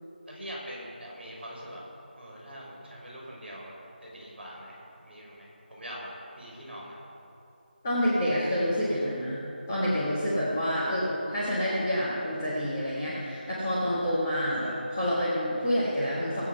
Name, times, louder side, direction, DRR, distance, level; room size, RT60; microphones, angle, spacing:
voice 1, 0.3-1.8 2.2-3.8 4.0-4.8 5.0-6.1 6.3-7.0 10.8-11.0, equal, ahead, -21 dB, 4.3 m, -43 dB
voice 2, 7.8-9.4 9.7-16.5, equal, 15° left, -9 dB, 1.6 m, -28 dB
21.5 x 8.6 x 5.6 m, 2.9 s
figure-of-eight pair, 180°, 6 cm